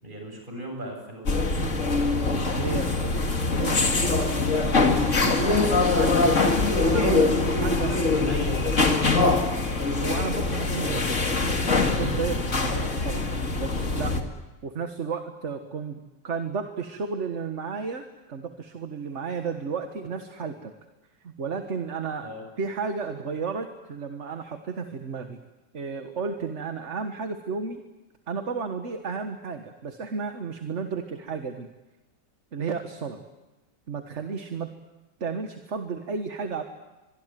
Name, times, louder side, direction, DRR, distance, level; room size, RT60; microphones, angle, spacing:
voice 1, 0.0-1.7 5.1-5.8 7.7-9.6 12.5-12.8 22.2-22.4, equal, 25° right, 2 dB, 8.4 m, -37 dB
sound 1, 1.3-14.2, left 3 dB, 45° left, 2.5 m, -23 dB
voice 2, 2.6-3.0 3.5-3.8 5.1-5.2 5.4-6.3 6.8-8.0 9.9-11.1 11.7-13.3 13.5-14.2 14.6-16.0 16.2-20.7 21.2-22.3 22.6-25.4 25.7-27.9 28.3-31.7 32.5-33.2 33.9-34.7 35.2-36.6, right 5 dB, 40° right, 6 dB, 1.7 m, -32 dB
24.5 x 23.5 x 9.3 m, 1.1 s
omnidirectional pair, 1.9 m